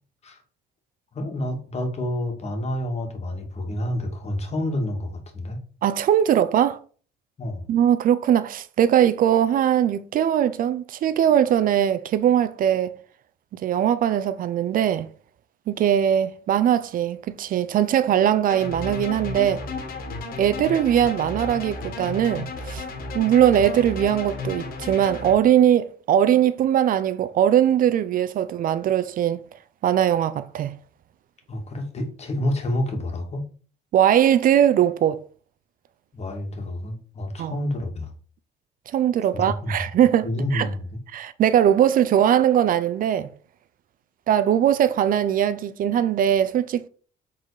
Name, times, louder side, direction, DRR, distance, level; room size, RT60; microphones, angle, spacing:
voice 1, 1.1-5.6 7.4-7.7 31.5-33.5 36.1-38.1 39.3-39.8 40.2-41.0, left 1 dB, 40° left, 2.1 m, -28 dB
voice 2, 5.8-6.8 7.7-12.9 13.5-15.1 15.7-19.6 20.4-22.8 23.1-29.4 29.8-30.8 33.9-35.2 37.4-37.6 38.9-40.8 41.1-43.3 44.3-46.9, right 10 dB, 55° right, 0.6 m, -20 dB
sound 1, 18.5-25.4, left 3 dB, 60° left, 1.9 m, -33 dB
7.6 x 4.1 x 4.9 m
cardioid pair, 110°, 17 cm